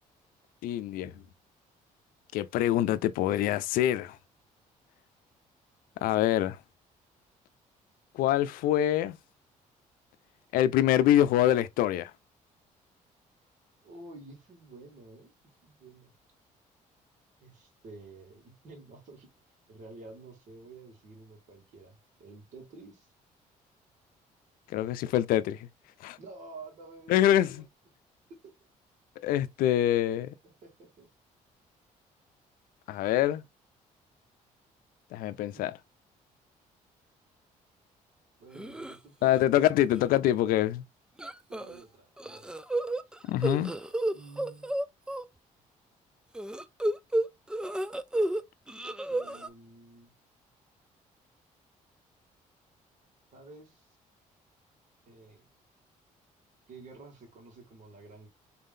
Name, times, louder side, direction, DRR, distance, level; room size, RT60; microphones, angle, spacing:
voice 1, 0.6-1.1 2.3-4.2 6.0-6.6 8.1-9.2 10.5-12.1 24.7-25.6 26.0-26.2 27.1-27.5 29.2-30.3 32.9-33.4 35.1-35.8 39.2-40.8 43.3-43.7, left 12 dB, 85° left, 0.5 m, -25 dB
voice 2, 13.8-16.1 17.4-19.3 19.7-23.1 26.2-27.6 28.4-28.5 30.4-31.1 35.5-35.7 38.4-39.7 41.5-42.6 43.0-43.1 44.1-44.7 49.1-50.1 53.3-54.0 55.1-55.4 56.7-58.3, right 3 dB, 60° right, 2.5 m, -50 dB
sound 1, 38.6-39.0 39.4-39.7 39.9-40.0 41.2-41.8 42.2-45.2 46.4-48.4 48.7-49.5, right 1 dB, 5° right, 0.4 m, -31 dB
4.1 x 3.7 x 2.6 m
cardioid pair, 100°, 14 cm